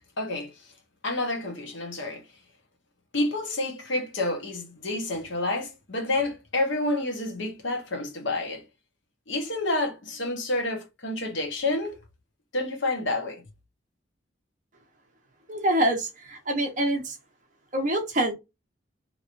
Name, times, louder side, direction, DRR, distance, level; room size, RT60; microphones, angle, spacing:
voice 1, 0.2-0.7 1.0-2.2 3.1-8.6 9.3-12.0 12.5-13.4, left 2 dB, 75° left, 1.1 m, -29 dB
voice 2, 15.5-17.2 17.7-18.3, right 1 dB, 40° right, 0.9 m, -25 dB
3.1 x 2.9 x 2.6 m
head